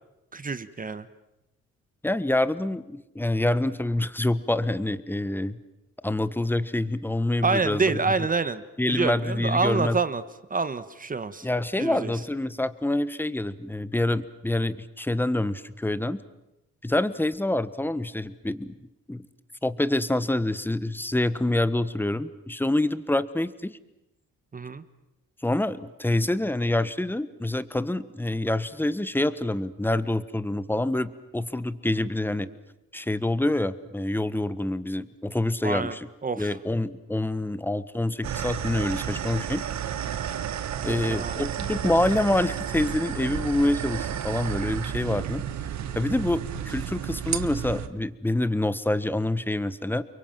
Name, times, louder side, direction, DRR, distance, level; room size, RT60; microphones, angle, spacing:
voice 1, 0.3-1.1 7.4-8.6 8.9-10.2 10.5-11.5 11.8-12.1 24.5-24.8 32.5-32.6 35.6-35.9 36.2-36.5 40.9-41.4, right 4 dB, 30° right, 13 dB, 1.4 m, -27 dB
voice 2, 2.0-5.6 6.0-8.0 8.8-10.0 11.4-16.2 16.8-18.7 19.1-19.3 19.6-23.8 25.4-32.5 32.9-36.1 36.4-39.6 40.8-45.4 45.9-50.0, left 1 dB, 5° left, 14 dB, 1.3 m, -26 dB
sound 1, 38.2-47.9, right 9 dB, 65° right, 1.6 m, -32 dB
29.5 x 23.5 x 7.5 m, 0.92 s
cardioid pair, 90°, 30 cm